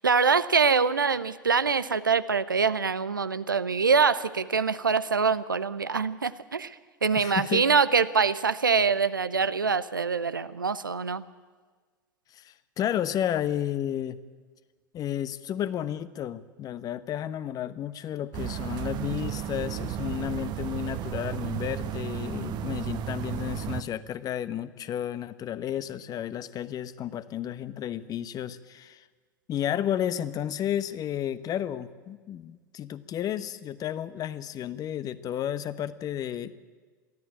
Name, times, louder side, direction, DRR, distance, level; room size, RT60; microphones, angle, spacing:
voice 1, 0.0-11.2, right 5 dB, 90° right, 14 dB, 0.7 m, -24 dB
voice 2, 7.1-7.6 12.3-14.2 14.9-29.0 29.5-36.5, left 10 dB, 35° left, 14 dB, 1.0 m, -32 dB
sound 1, 18.3-23.8, right 11 dB, 45° right, 1.0 m, -33 dB
23.0 x 14.0 x 8.6 m, 1.5 s
figure-of-eight pair, 85°, 11 cm